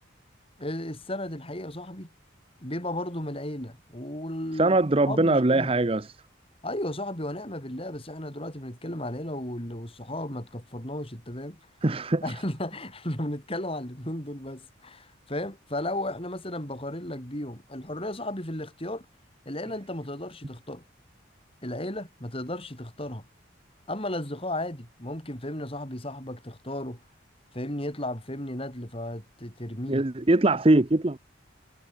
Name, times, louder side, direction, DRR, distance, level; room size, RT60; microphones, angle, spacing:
voice 1, 0.6-2.1 2.6-4.8 5.1-5.7 6.6-11.6 12.2-19.1 19.5-20.8 21.6-23.3 23.9-27.0 27.5-30.1, left 1 dB, 30° left, 5.5 m, -34 dB
voice 2, 4.6-6.1 11.8-12.2 29.9-31.2, right 2 dB, 30° right, 0.8 m, -22 dB
head